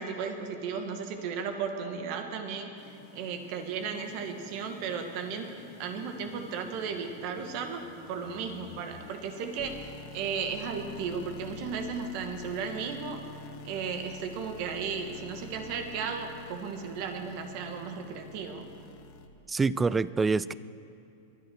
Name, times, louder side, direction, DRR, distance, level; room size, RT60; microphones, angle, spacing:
voice 1, 0.0-5.5 5.8-13.2 13.6-18.7, right 6 dB, 50° right, 5 dB, 1.8 m, -35 dB
sound 1, 2.8-19.3, left 4 dB, 45° left, 1.3 m, -48 dB
voice 2, 19.5-20.5, right 4 dB, 15° right, 18 dB, 0.3 m, -26 dB
23.0 x 8.4 x 6.3 m, 2.8 s
hypercardioid pair, 135°, 0 cm